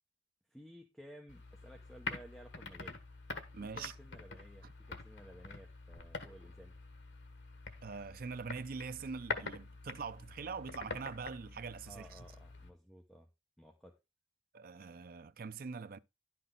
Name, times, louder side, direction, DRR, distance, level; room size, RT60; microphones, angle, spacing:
voice 1, 0.5-3.0 3.6-6.8 11.9-13.3 13.6-13.9, right 1 dB, ahead, 1.0 m, -55 dB
sound 1, 1.3-12.7, left 4 dB, 85° left, 1.5 m, -46 dB
voice 2, 3.5-3.9 4.6-4.7 7.8-12.3 14.5-16.0, right 5 dB, 55° right, 0.5 m, -43 dB
11.0 x 6.0 x 3.9 m
head